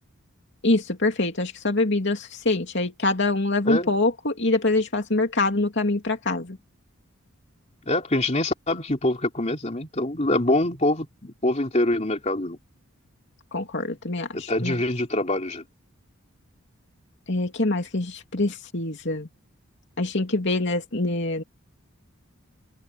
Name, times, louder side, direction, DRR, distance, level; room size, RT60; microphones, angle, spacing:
voice 1, 0.6-6.6 13.5-14.8 17.3-19.3 20.0-21.4, left 2 dB, 55° left, 2.9 m, -25 dB
voice 2, 7.9-12.6 14.3-15.6, left 1 dB, 30° left, 3.3 m, -24 dB
open air
head